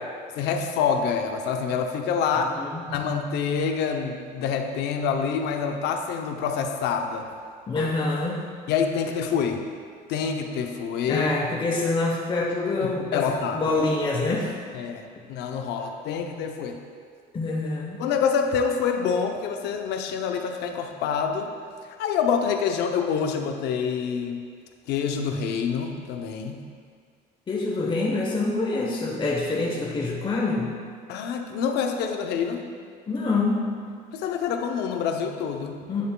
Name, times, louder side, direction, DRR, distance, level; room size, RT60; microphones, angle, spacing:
voice 1, 0.4-2.5 2.9-7.3 8.7-9.7 10.1-11.3 12.8-13.7 14.7-15.0 15.3-16.8 18.0-21.5 22.0-24.4 24.9-26.6 31.1-32.7 34.1-35.8, left 6 dB, 85° left, 5 dB, 0.6 m, -26 dB
voice 2, 2.3-2.9 7.7-8.5 11.1-14.5 17.3-18.0 27.5-30.7 33.1-33.9 35.9-36.1, left 3 dB, 30° left, -3 dB, 0.9 m, -26 dB
9.4 x 6.7 x 2.2 m, 2.1 s
cardioid pair, 110°, 17 cm